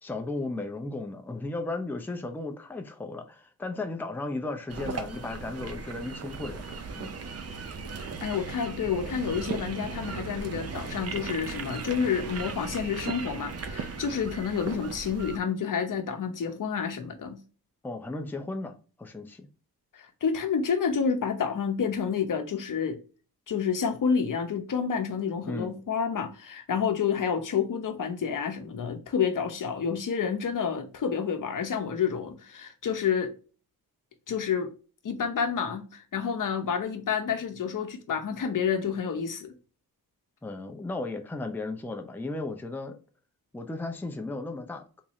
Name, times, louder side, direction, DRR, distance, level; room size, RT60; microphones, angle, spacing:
voice 1, 0.0-6.6 7.0-7.1 17.8-19.5 25.5-25.7 40.4-42.9 43.5-45.0, left 2 dB, 5° left, 0.5 m, -35 dB
sound 1, 4.7-15.4, right 4 dB, 40° right, 0.6 m, -37 dB
voice 2, 8.0-17.4 19.9-23.0 23.5-33.3 34.3-34.7 35.0-39.5, left 6 dB, 55° left, 0.8 m, -29 dB
3.7 x 2.6 x 3.0 m
cardioid pair, 90°, 38 cm